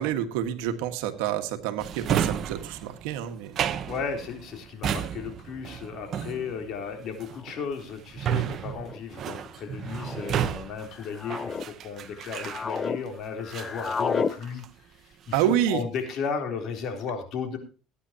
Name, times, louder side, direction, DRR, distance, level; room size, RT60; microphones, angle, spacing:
voice 1, 0.0-3.6 15.3-15.8, right 11 dB, 85° right, 8 dB, 1.6 m, -28 dB
Drawer open or close, 1.8-13.1 13.5-14.8 15.1-15.7, right 9 dB, 50° right, 1.0 m, -32 dB
voice 2, 3.9-14.6 15.0-17.6, left 6 dB, 55° left, 4 dB, 3.6 m, -34 dB
sound 1, 6.3-6.4 7.4-7.7 8.6-9.0 9.9-10.3 10.9-11.7 12.1-13.0 13.3-14.3, left 5 dB, 30° left, 0.7 m, -32 dB
18.5 x 9.8 x 2.9 m, 0.34 s
supercardioid pair, 105°, 0 cm